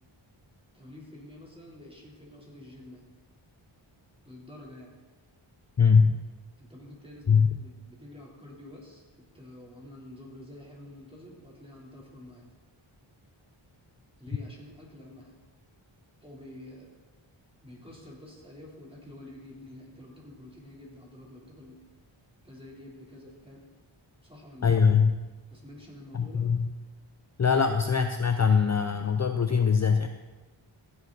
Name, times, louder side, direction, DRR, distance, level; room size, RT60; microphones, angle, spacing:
voice 1, 0.7-3.0 4.2-4.9 6.6-12.5 14.2-15.4 16.2-16.9 17.6-21.8 22.4-23.6 24.2-24.8 25.5-26.5, left 1 dB, 10° right, -4 dB, 3.7 m, -48 dB
voice 2, 5.8-6.2 7.3-7.5 24.6-25.2 26.1-26.7 27.4-30.1, left 6 dB, 35° left, 7 dB, 0.6 m, -22 dB
15.5 x 7.1 x 4.1 m, 1.2 s
cardioid pair, 45°, 50 cm